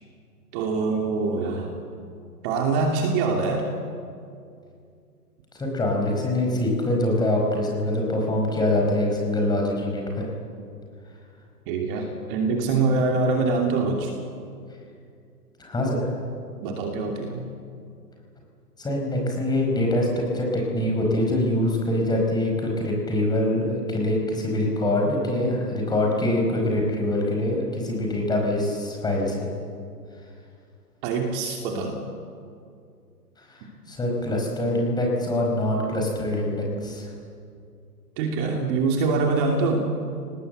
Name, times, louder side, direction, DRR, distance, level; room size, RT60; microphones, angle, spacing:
voice 1, 0.5-1.7 2.4-3.7 11.7-14.1 16.6-17.4 31.0-32.0 38.2-39.8, right 4 dB, 35° right, 2 dB, 2.8 m, -24 dB
voice 2, 5.5-10.3 15.6-16.1 18.8-29.5 33.4-37.1, left 1 dB, 10° left, 0 dB, 5.0 m, -24 dB
29.5 x 19.0 x 8.1 m, 2.4 s
hypercardioid pair, 140°, 48 cm